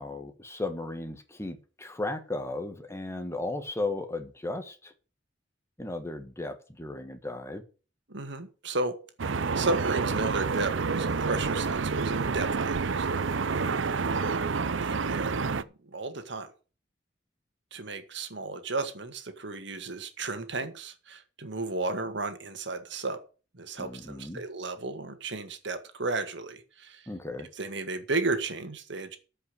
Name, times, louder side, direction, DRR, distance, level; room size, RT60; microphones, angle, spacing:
voice 1, 0.0-4.9 5.8-7.6 13.9-14.3 23.8-24.4 27.1-27.5, left 2 dB, 15° left, 1.4 m, -35 dB
voice 2, 8.1-9.0 9.5-13.2 13.6-16.5 17.7-23.2 23.5-27.1 27.5-29.2, right 3 dB, 70° right, 1.9 m, -34 dB
sound 1, 9.2-15.6, right 4 dB, 90° right, 0.7 m, -28 dB
14.0 x 5.6 x 6.6 m
head